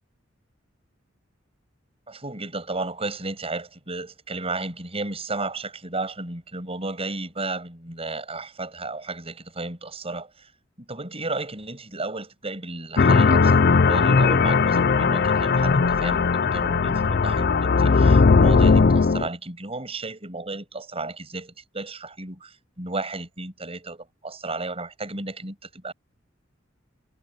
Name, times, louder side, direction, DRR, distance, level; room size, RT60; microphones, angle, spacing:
voice 1, 2.1-10.5 10.8-16.3 16.5-25.9, right 2 dB, 30° right, 7.1 m, -33 dB
sound 1, 13.0-19.3, left 4 dB, 55° left, 0.5 m, -18 dB
head